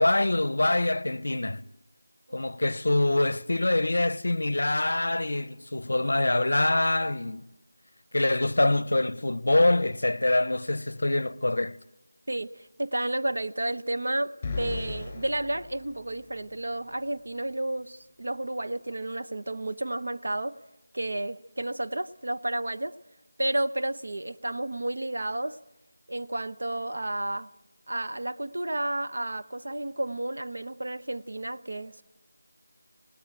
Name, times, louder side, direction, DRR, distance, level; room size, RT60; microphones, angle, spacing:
voice 1, 0.0-1.6 2.3-7.5 8.1-11.8, left 2 dB, 55° left, 0.7 m, -25 dB
voice 2, 12.3-20.6 20.9-22.9 23.4-25.6 26.1-27.5 27.9-32.0, right 1 dB, 55° right, 0.8 m, -31 dB
sound 1, 14.4-16.6, left 4 dB, 10° left, 3.8 m, -37 dB
19.5 x 19.0 x 8.9 m
figure-of-eight pair, 180°, 0 cm